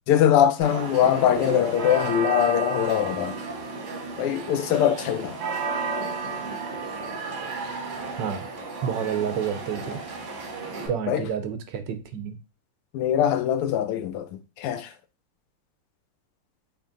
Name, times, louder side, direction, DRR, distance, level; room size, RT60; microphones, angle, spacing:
voice 1, 0.1-3.4 4.2-5.4 11.1-11.2 12.9-14.3 14.6-14.9, left 10 dB, 85° left, 1.6 m, -22 dB
FX - berenguela dando la media, 0.6-10.9, right 4 dB, 90° right, 2.3 m, -33 dB
voice 2, 7.6-8.5 8.8-10.0 10.9-12.4, right 8 dB, 70° right, 1.2 m, -30 dB
6.9 x 2.9 x 2.6 m
omnidirectional pair, 2.4 m